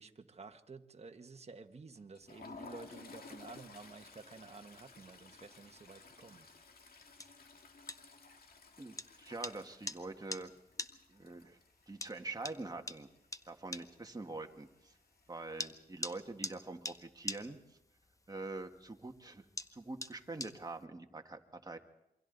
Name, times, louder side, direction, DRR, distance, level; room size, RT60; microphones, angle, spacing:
voice 1, 0.0-6.5, right 4 dB, 40° right, 6 dB, 1.4 m, -52 dB
Toilet flush, 2.0-12.7 13.0-13.2 13.5-13.7 14.7-15.2, left 4 dB, 65° left, 2.1 m, -55 dB
sound 1, 2.2-20.8, left 2 dB, 20° left, 0.9 m, -49 dB
voice 2, 8.8-10.5 11.1-11.6 11.9-13.1 13.5-14.9 15.3-17.8 18.3-19.4 19.7-21.8, right 3 dB, 25° right, 4 dB, 1.7 m, -45 dB
27.5 x 24.0 x 4.0 m, 0.89 s
wide cardioid pair, 90°, 17 cm